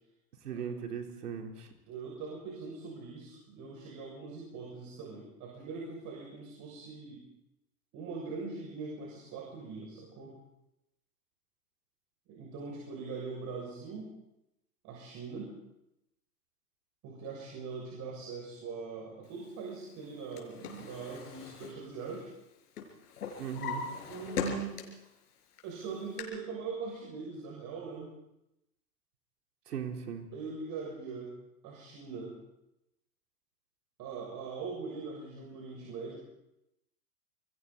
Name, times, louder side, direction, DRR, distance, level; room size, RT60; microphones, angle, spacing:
voice 1, 0.4-1.7 23.4-23.9 29.7-30.2, right 7 dB, 75° right, 2 dB, 4.2 m, -38 dB
voice 2, 1.9-7.3 7.9-10.4 12.3-14.1 14.8-15.5 17.0-22.3 24.1-24.8 25.6-28.1 30.3-31.3 31.6-32.4 34.0-36.2, right 4 dB, 40° right, -1 dB, 7.0 m, -41 dB
Drawer open or close, 20.0-22.5 22.8-25.1 25.5-26.2, left 6 dB, 80° left, 6.1 m, -40 dB
29.5 x 22.0 x 4.2 m, 0.85 s
hypercardioid pair, 115°, 46 cm